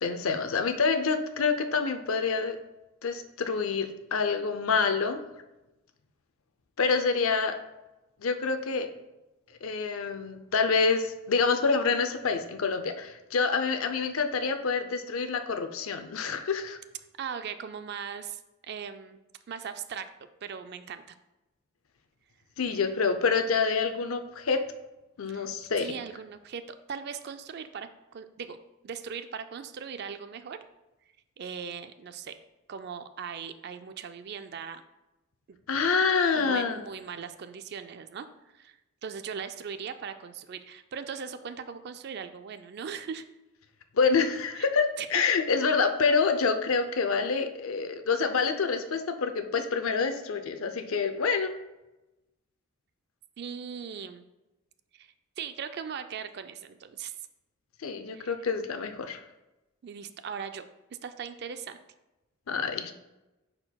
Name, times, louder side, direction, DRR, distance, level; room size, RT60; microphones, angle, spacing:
voice 1, 0.0-2.6 3.0-5.2 6.8-7.5 8.2-8.9 9.6-16.8 22.6-24.6 25.2-25.9 35.7-36.8 43.9-51.5 57.8-59.2 62.5-62.9, left 5 dB, 85° left, 8 dB, 0.5 m, -27 dB
voice 2, 17.2-19.2 19.5-20.1 20.4-21.2 25.3-25.5 25.8-28.6 28.8-30.6 31.4-32.3 32.7-34.8 36.4-38.3 38.5-43.2 44.6-44.7 45.0-45.1 53.4-54.2 54.9-57.1 58.1-58.3 59.8-60.6 61.0-61.8, right 6 dB, 50° right, 10 dB, 0.4 m, -39 dB
9.7 x 4.4 x 2.3 m, 1.0 s
head